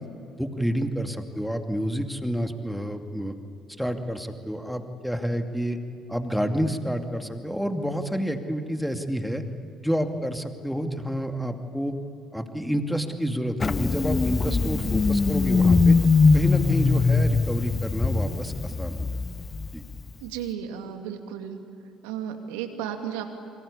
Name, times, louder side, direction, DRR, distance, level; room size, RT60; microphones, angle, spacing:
voice 1, 0.4-3.3 3.8-5.8 6.1-9.4 9.8-11.9 12.3-16.0 16.3-19.1 19.7-19.8, equal, ahead, 6 dB, 2.5 m, -29 dB
Engine starting, 13.6-20.1, left 4 dB, 30° left, 0.9 m, -22 dB
voice 2, 20.2-21.6 22.0-23.3, right 9 dB, 70° right, 6 dB, 2.5 m, -34 dB
28.0 x 25.0 x 8.6 m, 2.6 s
figure-of-eight pair, 50°, 0 cm